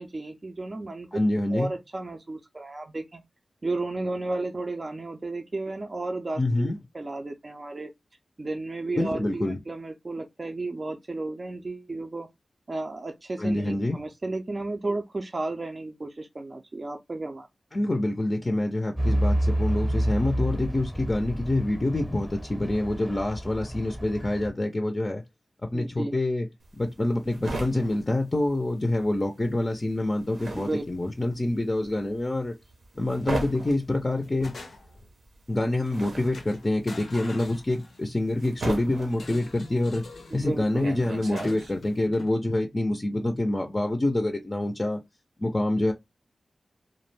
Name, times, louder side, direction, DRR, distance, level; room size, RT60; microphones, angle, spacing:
voice 1, 0.0-1.2 1.5-3.2 3.6-7.9 8.4-12.3 12.7-17.5 25.7-26.1 30.6-30.8 40.3-40.9, right 2 dB, 45° right, 0.4 m, -33 dB
voice 2, 1.1-1.7 6.4-6.8 9.0-9.6 13.4-14.0 17.7-25.2 25.6-26.5 26.7-32.5 33.0-34.5 35.5-40.1 40.3-45.0 45.4-45.9, left 1 dB, 35° left, 0.4 m, -26 dB
Truck / Idling, 19.0-24.5, right 1 dB, 5° right, 0.7 m, -29 dB
sound 1, 26.6-29.2 29.4-42.0, right 2 dB, 80° right, 0.7 m, -37 dB
sound 2, 33.2-33.6 34.0-35.1 35.9-36.0 36.3-38.2 39.1-40.4 41.4-42.3, left 3 dB, 85° left, 0.5 m, -45 dB
2.3 x 2.1 x 3.1 m
cardioid pair, 55°, 0 cm